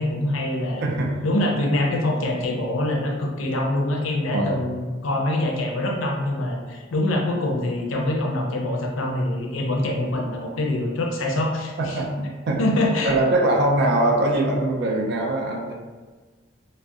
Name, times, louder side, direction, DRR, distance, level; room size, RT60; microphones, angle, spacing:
voice 1, 0.0-0.8 1.2-12.0 12.6-13.1, left 1 dB, 80° left, 0 dB, 0.5 m, -24 dB
voice 2, 0.8-1.2 4.3-4.6 11.8-12.6 13.0-15.7, right 1 dB, 55° right, 0 dB, 0.4 m, -22 dB
2.6 x 2.0 x 2.3 m, 1.4 s
head